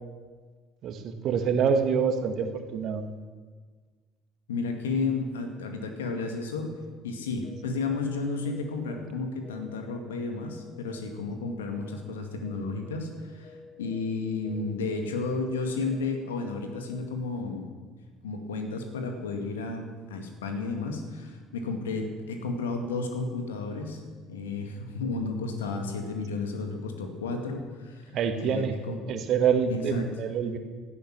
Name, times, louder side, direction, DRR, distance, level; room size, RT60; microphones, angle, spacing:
voice 1, 0.8-3.0 28.1-28.8 29.1-30.6, right 6 dB, 50° right, 7 dB, 1.6 m, -26 dB
voice 2, 4.5-6.7 7.0-17.7 18.2-24.0 24.3-29.0 29.6-30.1, left 3 dB, 75° left, 4 dB, 2.1 m, -32 dB
sound 1, 7.4-7.9 8.4-8.9 9.4-9.9 10.4-10.9 11.4-11.9 12.4-12.9 13.4-13.9 14.4-14.9 15.4-15.9 16.4-16.9, left 4 dB, 35° left, 3.8 m, -50 dB
17.5 x 12.5 x 6.1 m, 1.5 s
figure-of-eight pair, 60°, 0 cm